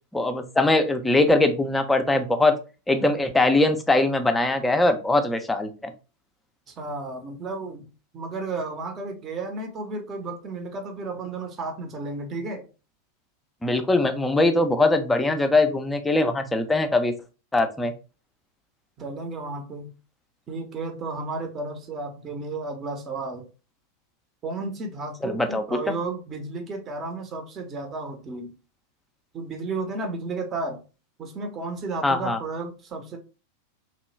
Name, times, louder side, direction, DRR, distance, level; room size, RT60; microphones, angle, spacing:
voice 1, 0.1-2.5 2.9-5.9 13.6-17.1 17.5-17.9 25.2-25.6 32.0-32.4, left 2 dB, 10° left, 0.4 m, -21 dB
voice 2, 6.7-12.7 19.0-19.9 20.5-23.5 24.4-28.5 29.3-30.8 31.2-33.2, right 3 dB, 25° right, 0.7 m, -33 dB
3.0 x 2.2 x 3.2 m
figure-of-eight pair, 90°, 0 cm